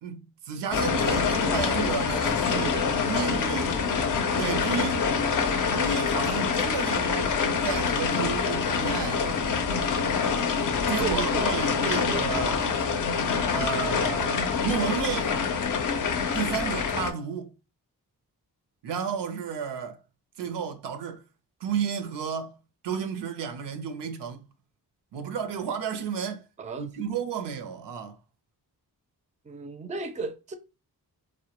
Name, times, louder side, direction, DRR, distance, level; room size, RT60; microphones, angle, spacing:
voice 1, 0.0-3.7 4.4-5.1 5.7-7.4 7.6-9.6 10.9-12.6 13.5-14.3 14.6-15.4 16.3-17.5 18.8-20.0 20.4-21.2 21.6-22.5 22.8-24.4 25.1-26.4 26.8-28.2, right 6 dB, 85° right, 0.5 m, -32 dB
sound 1, 0.7-17.1, left 5 dB, 50° left, 0.5 m, -26 dB
voice 2, 1.1-1.6 2.5-2.9 3.2-4.0 11.0-12.3 26.6-26.9 29.4-30.6, right 3 dB, 20° right, 0.4 m, -36 dB
2.1 x 2.1 x 2.8 m
cardioid pair, 65°, 40 cm